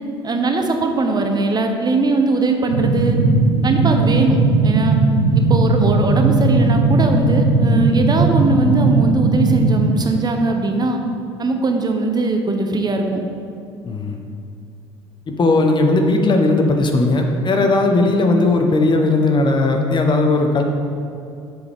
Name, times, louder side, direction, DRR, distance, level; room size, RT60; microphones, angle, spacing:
voice 1, 0.2-3.2 3.6-5.0 5.4-11.0 11.4-13.2, right 3 dB, 30° right, 4 dB, 0.9 m, -20 dB
sound 1, 2.7-9.9, right 3 dB, 80° right, 0.8 m, -17 dB
voice 2, 13.8-14.2 15.4-20.6, left 2 dB, 35° left, 3 dB, 1.0 m, -17 dB
7.7 x 7.4 x 3.5 m, 2.6 s
hypercardioid pair, 60°, 14 cm